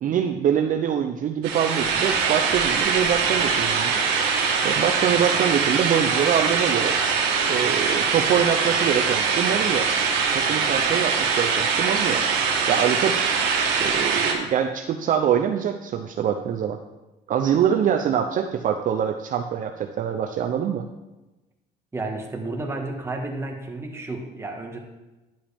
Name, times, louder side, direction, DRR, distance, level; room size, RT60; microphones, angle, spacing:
voice 1, 0.0-4.0 4.6-6.9 7.5-9.9 10.1-12.2 12.7-13.2 13.8-16.8 17.3-20.8, right 8 dB, 50° right, 5 dB, 0.6 m, -24 dB
sound 1, 1.4-14.3, right 5 dB, 90° right, 1.6 m, -22 dB
voice 2, 21.9-24.8, right 2 dB, 15° right, 1 dB, 1.6 m, -31 dB
10.5 x 7.7 x 3.5 m, 1.1 s
cardioid pair, 110°, 17 cm